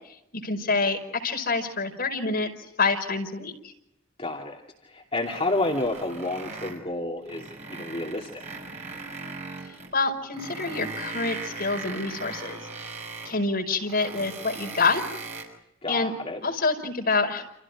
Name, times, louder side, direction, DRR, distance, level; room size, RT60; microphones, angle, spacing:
voice 1, 0.4-2.5 2.8-3.5 9.9-12.6 13.2-15.0 15.9-16.1 16.4-17.4, left 3 dB, 50° left, 2 dB, 5.3 m, -26 dB
voice 2, 4.2-4.6 4.8-8.4 15.8-16.4, left 2 dB, 30° left, -1 dB, 2.7 m, -30 dB
sound 1, 5.3-6.9 7.2-9.9 10.3-13.4 13.8-15.4, right 3 dB, 35° right, 6.2 m, -38 dB
30.0 x 28.5 x 4.9 m, 0.83 s
head